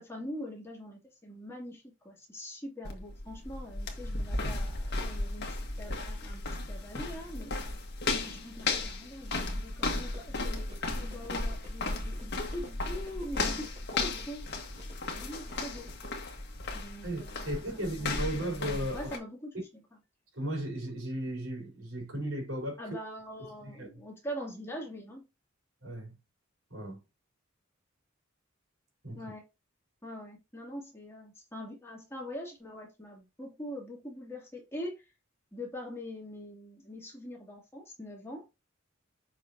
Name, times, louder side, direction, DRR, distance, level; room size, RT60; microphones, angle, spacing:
voice 1, 0.0-7.6 8.3-14.5 15.1-16.0 16.7-19.8 22.8-25.3 29.1-29.5 30.0-35.1 35.5-38.5, equal, 15° left, 2.8 m, -43 dB
sound 1, 2.9-19.2, left 2 dB, 55° left, 1.8 m, -35 dB
sound 2, 10.1-16.1, left 1 dB, 35° right, 3.7 m, -52 dB
voice 2, 17.0-19.1 20.3-22.8 23.6-23.9 25.8-26.2 26.7-27.0 29.0-29.2, right 1 dB, 75° right, 4.6 m, -35 dB
7.5 x 5.9 x 2.9 m
head